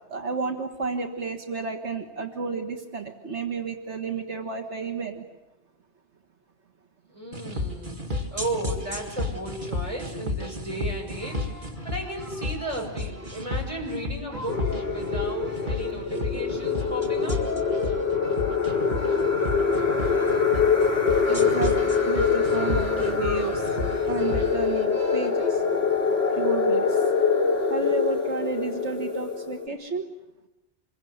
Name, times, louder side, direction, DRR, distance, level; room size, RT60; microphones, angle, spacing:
voice 1, 0.1-5.2 21.3-23.7 24.1-25.6 26.4-27.0 27.7-30.1, right 5 dB, 80° right, 4 dB, 1.9 m, -32 dB
voice 2, 7.1-8.0 8.3-17.4, right 1 dB, 30° right, 0 dB, 6.8 m, -34 dB
sound 1, 7.3-24.5, left 2 dB, 45° right, 2.7 m, -32 dB
sound 2, 11.2-25.5, left 2 dB, 15° left, 6.1 m, -43 dB
sound 3, 14.5-29.7, left 5 dB, 40° left, 5.0 m, -24 dB
27.0 x 22.5 x 9.5 m, 0.98 s
omnidirectional pair, 1.2 m